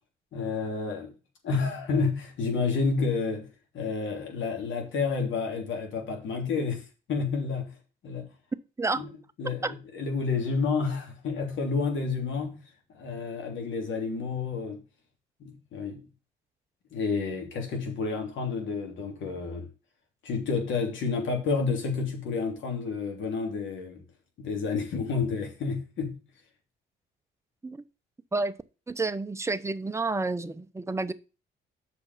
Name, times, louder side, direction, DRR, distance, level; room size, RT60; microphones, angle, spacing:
voice 1, 0.3-1.1 1.4-3.5 3.7-7.7 8.0-8.3 9.0-9.1 9.4-12.6 12.9-14.8 15.4-16.1 16.9-19.7 20.2-24.0 24.4-26.2, left 4 dB, 75° left, 3.1 m, -30 dB
voice 2, 28.9-31.1, right 3 dB, 15° right, 0.7 m, -30 dB
6.8 x 5.2 x 7.0 m
cardioid pair, 90°, 20 cm